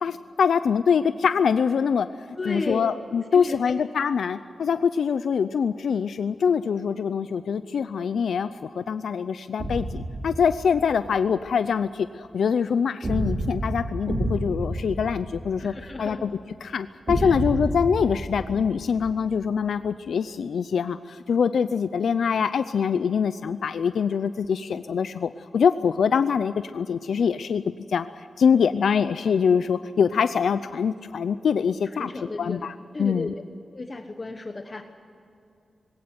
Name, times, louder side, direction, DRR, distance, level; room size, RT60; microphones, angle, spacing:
voice 1, 0.0-2.1 2.4-16.3 16.6-27.6 27.9-28.1 28.4-32.1 32.4-33.3, left 6 dB, 90° left, 12 dB, 0.5 m, -24 dB
voice 2, 2.4-2.8 3.3-3.6 15.6-16.2 17.2-17.4 32.0-32.6 32.9-33.3 33.7-34.8, left 3 dB, 30° left, 5 dB, 1.1 m, -33 dB
sound 1, 9.6-11.0 13.0-16.0 17.1-19.2, right 1 dB, 40° right, 4.5 m, -30 dB
20.0 x 18.0 x 9.6 m, 2.6 s
wide cardioid pair, 150°, 0 cm